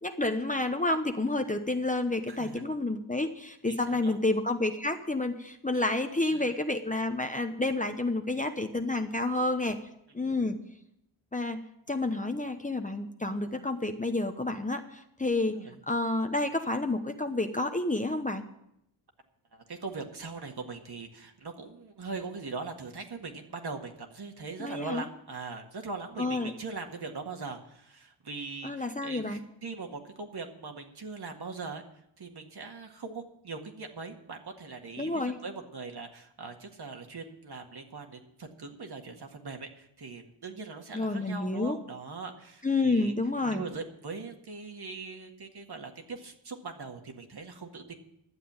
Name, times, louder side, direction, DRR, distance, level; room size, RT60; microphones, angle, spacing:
voice 1, 0.0-9.8 10.1-10.6 11.3-11.6 11.9-15.6 15.9-18.5 24.6-25.1 26.2-26.5 28.6-29.4 35.0-35.4 40.9-41.8 42.6-43.6, left 2 dB, 15° left, 6 dB, 0.9 m, -29 dB
voice 2, 2.3-2.7 3.7-4.2 5.7-5.8 6.3-6.5 15.6-15.8 19.5-31.8 32.2-43.1 43.5-47.9, right 4 dB, 50° right, 3 dB, 1.9 m, -41 dB
11.5 x 7.6 x 8.8 m, 0.78 s
cardioid pair, 80°, 49 cm